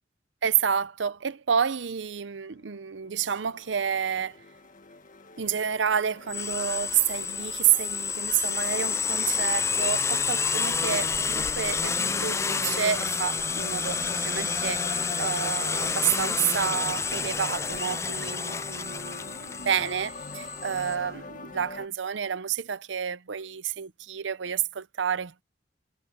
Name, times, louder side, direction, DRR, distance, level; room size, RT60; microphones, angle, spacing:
voice 1, 0.4-4.4 5.4-25.4, right 8 dB, 80° right, 0.7 m, -29 dB
sound 1, 2.6-21.9, left 3 dB, 45° left, 1.6 m, -42 dB
sound 2, 6.3-20.9, left 5 dB, 15° left, 0.3 m, -29 dB
head